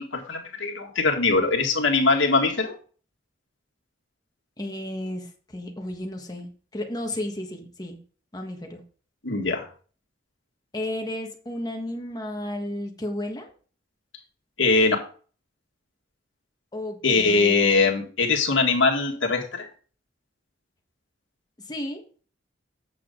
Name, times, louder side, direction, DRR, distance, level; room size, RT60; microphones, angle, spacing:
voice 1, 0.0-2.8 9.2-9.7 14.6-15.0 17.0-19.7, left 3 dB, 75° left, 1 dB, 1.9 m, -22 dB
voice 2, 4.6-8.0 8.3-8.8 10.7-13.5 16.7-17.8 21.7-22.0, left 1 dB, 20° left, 2 dB, 1.5 m, -33 dB
8.5 x 6.8 x 3.9 m, 0.42 s
head